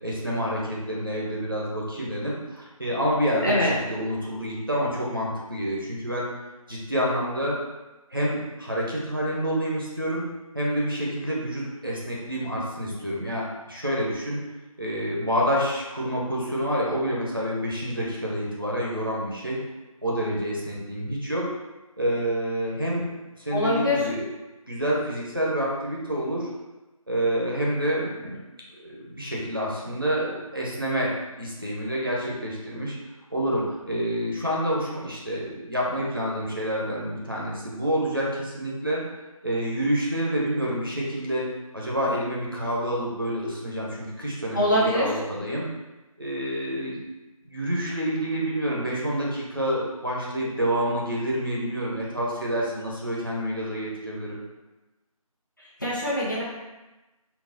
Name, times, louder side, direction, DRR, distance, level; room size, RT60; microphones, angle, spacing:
voice 1, 0.0-6.3 6.7-7.6 8.1-10.2 10.5-14.4 14.8-19.6 20.0-21.5 22.0-23.1 23.4-24.3 24.7-26.5 27.1-28.4 28.8-33.0 33.3-39.0 39.4-41.5 41.7-45.6 46.2-47.0 47.5-54.4, equal, 40° right, -5 dB, 0.6 m, -28 dB
voice 2, 23.5-24.0 44.5-45.1 55.6-56.4, left 1 dB, 35° left, -7 dB, 0.9 m, -23 dB
3.9 x 2.2 x 3.7 m, 1.1 s
figure-of-eight pair, 170°, 19 cm